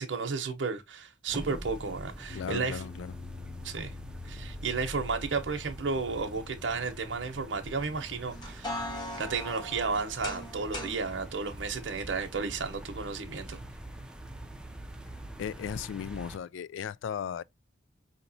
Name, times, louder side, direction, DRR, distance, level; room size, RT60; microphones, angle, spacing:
voice 1, 0.0-2.8 3.6-3.9 4.2-8.9 9.2-13.6, right 4 dB, 70° right, 0.8 m, -33 dB
sound 1, 1.3-16.4, right 1 dB, 5° right, 0.5 m, -44 dB
voice 2, 2.3-3.1 15.4-17.4, left 8 dB, 80° left, 0.3 m, -36 dB
sound 2, 2.3-12.5, left 5 dB, 55° left, 0.7 m, -49 dB
sound 3, 8.3-11.0, left 1 dB, 25° left, 1.3 m, -39 dB
5.3 x 2.9 x 2.7 m
head